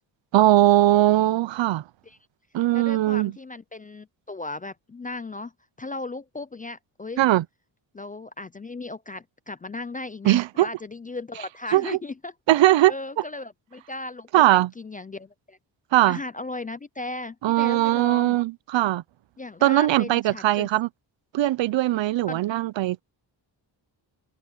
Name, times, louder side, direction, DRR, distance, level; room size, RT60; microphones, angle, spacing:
voice 1, 0.3-1.8 2.5-3.3 7.2-7.4 10.2-10.7 11.7-12.0 12.5-12.9 14.3-14.7 15.9-16.2 17.4-19.0 19.6-20.9 21.3-23.0, right 15 dB, 70° right, 0.6 m, -20 dB
voice 2, 2.7-5.5 5.8-7.2 7.9-12.3 12.9-15.6 16.0-18.4 19.4-20.7 22.3-22.4, left 2 dB, 20° left, 0.3 m, -36 dB
wide cardioid pair, 130°, 46 cm